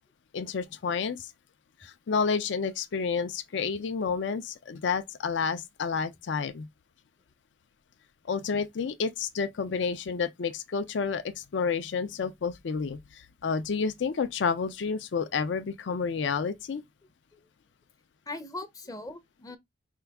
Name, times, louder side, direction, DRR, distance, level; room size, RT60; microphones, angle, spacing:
voice 1, 0.3-1.3 1.8-6.7 8.3-16.8, left 5 dB, 75° left, 0.4 m, -30 dB
voice 2, 18.3-19.6, left 2 dB, 20° left, 0.5 m, -40 dB
4.6 x 2.3 x 3.4 m
head